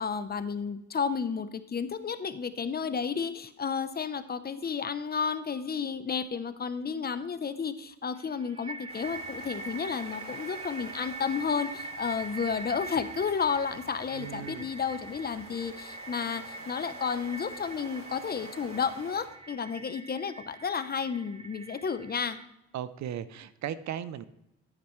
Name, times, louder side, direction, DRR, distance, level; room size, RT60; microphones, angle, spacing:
voice 1, 0.0-22.4, left 6 dB, 30° left, 12 dB, 0.7 m, -32 dB
sound 1, 8.2-22.5, right 3 dB, 20° right, 0.7 m, -44 dB
sound 2, 8.9-19.3, right 2 dB, 45° right, 2.9 m, -48 dB
voice 2, 14.1-14.7 22.7-24.2, right 10 dB, 65° right, 15 dB, 0.6 m, -37 dB
10.0 x 8.7 x 3.2 m, 0.87 s
cardioid pair, 90°, 30 cm